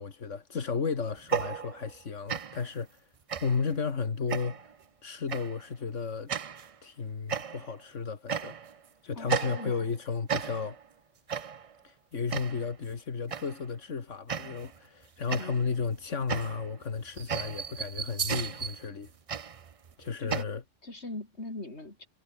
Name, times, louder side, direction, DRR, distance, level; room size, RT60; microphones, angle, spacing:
voice 1, 0.0-3.1 3.4-4.7 5.0-6.3 6.8-8.6 9.0-10.8 11.8-19.1 20.0-20.6, left 5 dB, 85° left, 2.2 m, -33 dB
sound 1, 1.2-2.0 2.3-2.7 3.3-3.7 4.3-4.7 5.3-5.6 6.3-6.7 7.3-7.8 8.3-8.8 9.3-10.0 10.3-10.8 11.3-11.7 12.3-12.7 13.3-13.7 14.3-14.8 15.3-20.4, right 7 dB, 40° right, 0.5 m, -35 dB
voice 2, 9.1-9.9 15.4-15.7 20.2-20.5 20.8-22.1, left 2 dB, 65° left, 4.8 m, -41 dB
omnidirectional pair, 1.2 m